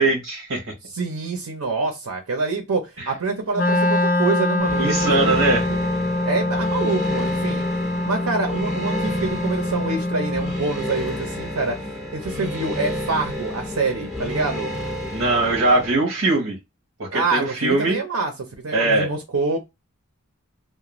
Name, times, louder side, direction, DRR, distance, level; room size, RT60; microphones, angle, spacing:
voice 1, 0.0-0.7 3.0-3.1 4.8-5.7 15.1-16.6 17.0-18.0 18.7-19.1, right 2 dB, 55° right, 0.9 m, -21 dB
voice 2, 0.9-5.8 6.2-7.7 8.0-11.8 12.1-14.7 17.1-19.6, right 3 dB, 90° right, 0.6 m, -26 dB
Wind instrument woodwind instrument, 3.5-10.7, left 1 dB, 40° left, 0.5 m, -24 dB
sound 1, 4.6-15.9, left 1 dB, ahead, 0.7 m, -30 dB
2.4 x 2.1 x 3.0 m
head